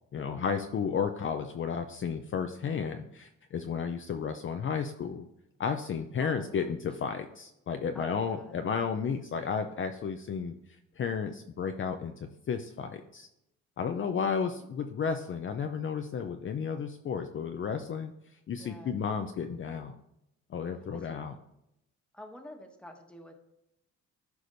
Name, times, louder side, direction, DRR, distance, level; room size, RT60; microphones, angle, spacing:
voice 1, 0.1-5.2 5.6-10.5 11.0-13.3 13.8-18.1 18.5-19.9 20.5-21.3, left 6 dB, 40° left, 6 dB, 0.6 m, -33 dB
voice 2, 6.2-6.7 7.9-8.6 18.6-19.0 20.7-21.2 22.1-23.4, left 1 dB, 5° left, 3 dB, 1.4 m, -49 dB
14.0 x 4.9 x 2.7 m, 0.85 s
cardioid pair, 90°, 30 cm